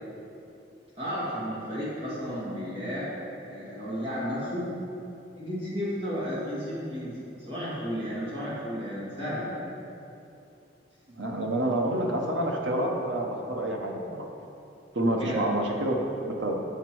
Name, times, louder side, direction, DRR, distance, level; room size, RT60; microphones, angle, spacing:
voice 1, 1.0-3.1 3.4-4.7 5.3-9.6 15.0-15.4, equal, 30° right, -10 dB, 2.1 m, -33 dB
voice 2, 11.1-14.3 14.9-16.6, right 1 dB, 75° right, 1 dB, 0.9 m, -28 dB
7.9 x 7.2 x 4.6 m, 2.7 s
head